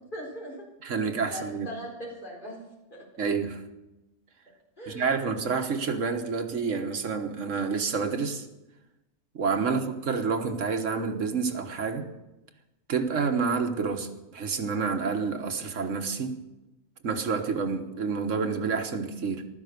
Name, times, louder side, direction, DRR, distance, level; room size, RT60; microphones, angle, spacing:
voice 1, 0.1-0.6 1.2-2.6 2.9-3.0 4.8-5.2 9.6-9.9, equal, 40° left, 4.3 m, -40 dB
voice 2, 0.8-1.7 3.2-3.6 4.9-8.5 9.3-12.1 12.9-16.4 17.0-19.5, right 5 dB, 80° right, 1.7 m, -28 dB
15.5 x 12.5 x 6.7 m
omnidirectional pair, 1.3 m